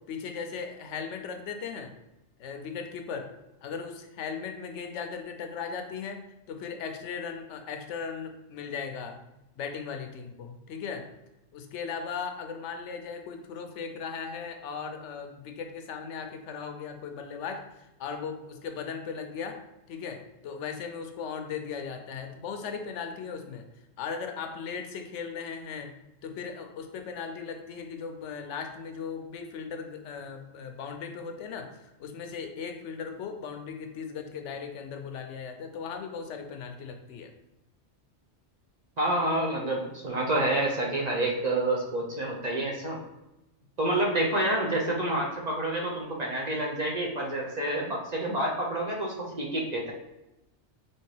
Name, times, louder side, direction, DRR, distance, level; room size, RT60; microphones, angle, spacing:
voice 1, 0.1-1.9 2.4-3.3 3.6-9.2 9.6-11.1 11.5-19.6 19.9-23.7 24.0-37.3, left 6 dB, 80° left, 5 dB, 0.9 m, -37 dB
voice 2, 39.0-43.0 43.8-49.9, right 1 dB, 45° right, -2 dB, 0.7 m, -28 dB
4.3 x 2.9 x 3.2 m, 0.94 s
omnidirectional pair, 1.2 m